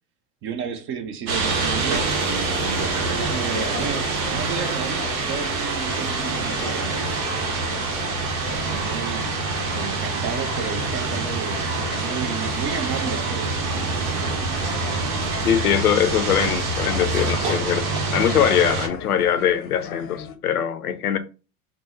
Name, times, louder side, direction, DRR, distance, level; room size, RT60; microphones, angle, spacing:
voice 1, 0.4-7.0 8.5-13.7, right 7 dB, 30° right, 0.4 m, -32 dB
sound 1, 1.3-18.9, right 3 dB, 70° right, 0.9 m, -26 dB
sound 2, 1.8-20.4, left 7 dB, 30° left, 0.6 m, -37 dB
voice 2, 15.4-21.2, left 9 dB, 85° left, 0.5 m, -22 dB
3.4 x 2.0 x 3.0 m
figure-of-eight pair, 75°, 44 cm